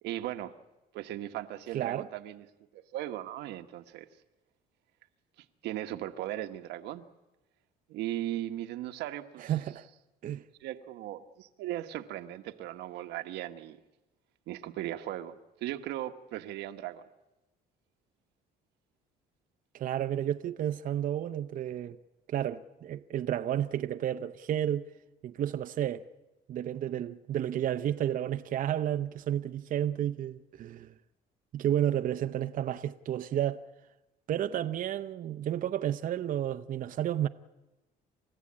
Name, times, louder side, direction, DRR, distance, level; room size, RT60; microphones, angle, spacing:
voice 1, 0.0-0.5 0.9-2.4 2.7-4.1 5.6-7.0 7.9-9.5 10.6-13.8 14.5-15.4 15.6-17.0, right 13 dB, 85° right, 1.2 m, -37 dB
voice 2, 1.7-2.1 9.4-9.9 10.2-10.4 19.7-22.0 22.3-24.8 25.2-26.0 26.5-30.9 31.5-33.6 34.3-37.3, right 11 dB, 55° right, 0.7 m, -31 dB
29.5 x 14.5 x 8.6 m
cardioid pair, 110°, 17 cm